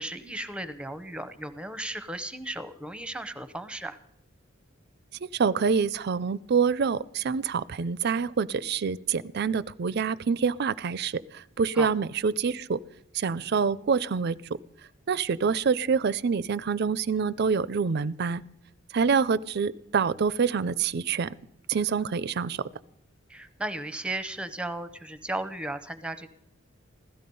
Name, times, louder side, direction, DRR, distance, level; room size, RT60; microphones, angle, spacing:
voice 1, 0.0-4.0 11.8-11.9 23.3-26.3, right 1 dB, 5° right, 12 dB, 0.7 m, -35 dB
voice 2, 5.2-12.8 13.1-14.4 15.1-18.4 18.9-21.3 21.7-22.6, right 5 dB, 55° right, 19 dB, 0.4 m, -26 dB
16.0 x 13.5 x 5.4 m, 0.77 s
head